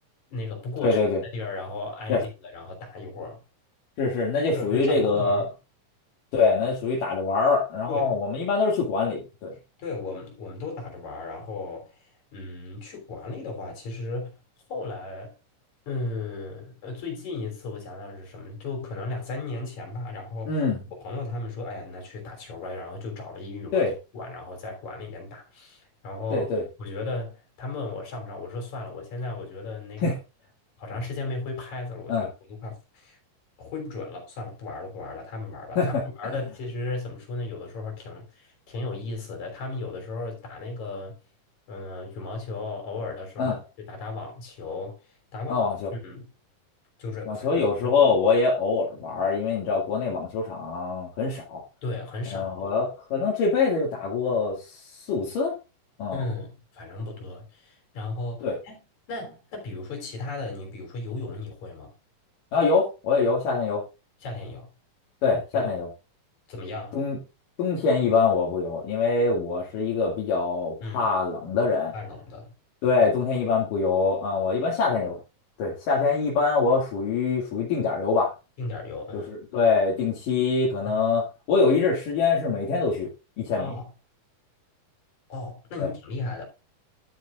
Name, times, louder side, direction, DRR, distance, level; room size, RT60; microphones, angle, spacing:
voice 1, 0.3-1.0 1.3-3.4 4.5-5.5 7.9-8.2 9.8-14.4 14.7-15.4 15.9-20.6 20.9-26.5 26.8-30.2 30.8-33.2 33.6-35.9 36.2-41.2 41.7-45.6 45.9-46.3 47.0-47.5 47.8-48.0 51.8-52.7 56.1-58.8 59.1-61.9 64.2-64.7 65.5-65.7 66.5-67.0 70.8-71.1 71.9-72.5 78.6-79.3 80.9-81.0 83.6-83.9 85.3-86.5, left 3 dB, 55° left, 4.8 m, -35 dB
voice 2, 0.8-1.2 2.1-2.2 4.0-5.5 6.3-9.5 20.5-20.8 23.7-23.9 26.3-26.6 30.0-30.1 32.1-32.3 35.8-36.0 43.4-43.6 45.5-45.9 47.3-51.6 52.3-54.8 55.1-55.5 56.0-56.2 58.4-58.6 62.5-63.8 65.2-65.9 66.9-67.2 67.6-71.9 72.8-75.2 75.6-78.3 79.1-83.1 83.4-83.7 85.8-85.9, left 4 dB, 70° left, 3.8 m, -24 dB
12.0 x 8.4 x 2.5 m
omnidirectional pair, 4.0 m